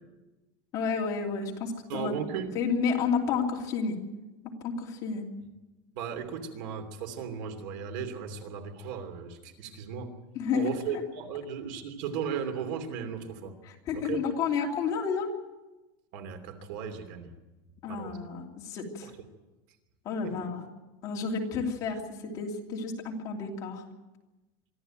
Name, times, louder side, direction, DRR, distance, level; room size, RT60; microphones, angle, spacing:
voice 1, 0.7-2.1 2.5-4.0 4.6-5.3 10.3-11.0 13.6-15.3 17.8-19.1 20.0-20.6 21.0-23.8, left 5 dB, 30° left, 0 dB, 2.9 m, -31 dB
voice 2, 1.9-2.5 5.9-10.1 10.5-13.5 13.9-14.2 16.1-17.3 17.8-18.2 19.0-19.1 20.2-20.5, right 7 dB, 55° right, 7 dB, 3.0 m, -36 dB
24.0 x 14.0 x 9.0 m, 1.1 s
supercardioid pair, 175°, 12 cm